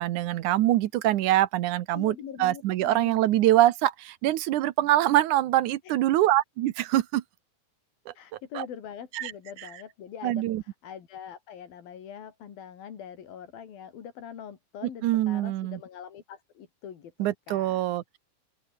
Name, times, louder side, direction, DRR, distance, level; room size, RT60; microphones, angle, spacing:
voice 1, 0.0-7.2 8.5-8.7 9.1-9.3 9.6-9.7 10.2-10.6 15.0-15.8 17.2-18.2, right 14 dB, 70° right, 2.2 m, -24 dB
voice 2, 1.9-3.2 8.2-17.8, left 8 dB, 85° left, 4.6 m, -43 dB
open air
omnidirectional pair, 4.1 m